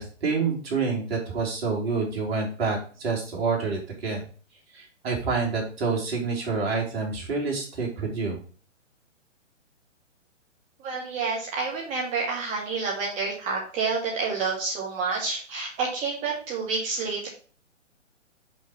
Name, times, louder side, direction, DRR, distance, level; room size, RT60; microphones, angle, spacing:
voice 1, 0.0-4.2 4.7-8.4, right 4 dB, 50° right, -1 dB, 3.2 m, -28 dB
voice 2, 10.8-17.3, right 4 dB, 20° right, -4 dB, 1.7 m, -29 dB
5.5 x 5.1 x 5.7 m, 0.40 s
figure-of-eight pair, 135°, 38 cm